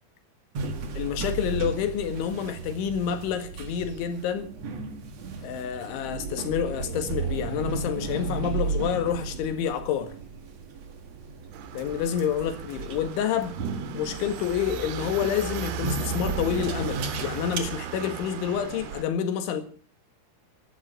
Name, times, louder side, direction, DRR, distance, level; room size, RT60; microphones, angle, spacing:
sound 1, 0.5-17.6, right 4 dB, 50° right, 2.1 m, -34 dB
voice 1, 1.0-4.5 5.4-10.2 11.8-13.6 13.9-19.6, left 8 dB, 85° left, 4.2 m, -28 dB
sound 2, 11.5-19.0, right 8 dB, 85° right, 3.9 m, -37 dB
15.5 x 12.0 x 6.7 m
omnidirectional pair, 5.3 m